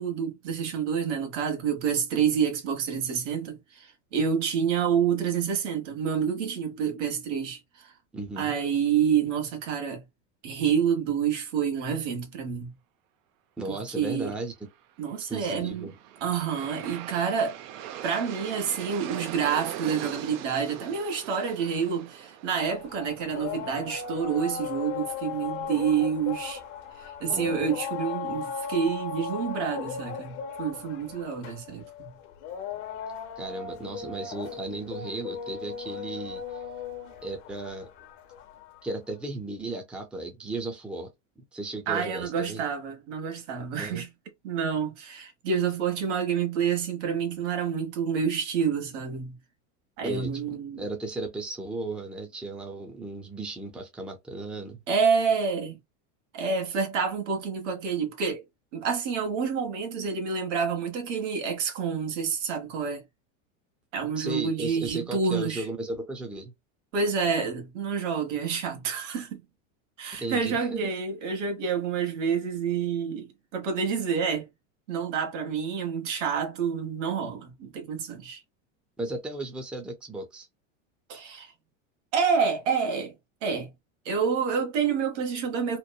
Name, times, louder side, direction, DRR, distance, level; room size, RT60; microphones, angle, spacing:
voice 1, 0.0-7.9 8.4-10.0 10.4-12.7 13.7-14.3 15.0-15.9 16.2-17.6 18.0-26.6 27.0-32.1 41.9-44.1 44.4-49.4 50.0-50.8 54.9-55.8 56.3-58.4 58.7-63.0 63.9-65.6 66.9-69.4 70.0-74.5 74.9-78.4 81.1-81.5 82.1-83.1 83.4-83.7 84.0-85.8, right 6 dB, 80° right, 1.2 m, -28 dB
voice 2, 8.1-8.5 13.6-14.5 15.3-15.9 27.3-27.6 33.4-36.4 37.2-37.9 38.8-41.1 41.5-42.6 43.8-44.0 50.0-54.8 64.2-66.5 70.2-70.9 79.0-80.5, right 2 dB, 5° right, 0.5 m, -35 dB
Aircraft, 15.5-26.5, right 11 dB, 50° right, 0.5 m, -42 dB
sound 1, 22.6-39.0, left 6 dB, 50° left, 0.7 m, -37 dB
3.0 x 2.0 x 2.2 m
supercardioid pair, 125°, 36 cm